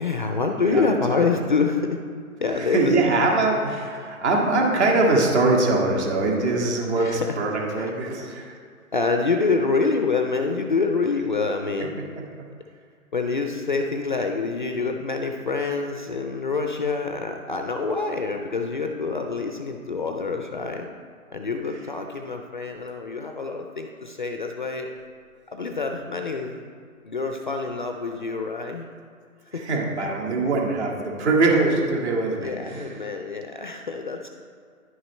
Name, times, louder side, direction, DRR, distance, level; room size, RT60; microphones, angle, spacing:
voice 1, 0.0-2.0 2.4-3.1 6.9-7.4 7.8-7.9 8.9-12.3 13.1-20.9 21.3-24.9 25.5-26.6 27.0-28.9 29.5-29.7 32.4-34.4, left 4 dB, 35° left, 4 dB, 0.4 m, -26 dB
voice 2, 0.6-1.3 2.6-8.6 12.2-12.5 29.5-32.9, right 2 dB, 50° right, -1 dB, 2.0 m, -23 dB
11.0 x 6.1 x 3.2 m, 2.1 s
hypercardioid pair, 145°, 43 cm